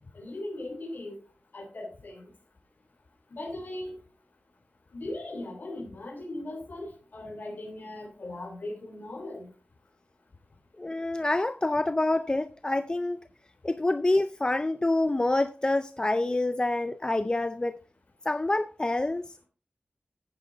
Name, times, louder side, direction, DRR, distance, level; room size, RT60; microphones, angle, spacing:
voice 1, 0.1-1.2 1.5-2.3 3.3-4.0 4.9-9.5, left 1 dB, 60° left, 3.2 m, -38 dB
voice 2, 10.8-13.2 13.6-17.7 18.2-19.5, left 2 dB, 25° left, 0.5 m, -27 dB
10.0 x 9.7 x 3.9 m
wide cardioid pair, 105°, 3 cm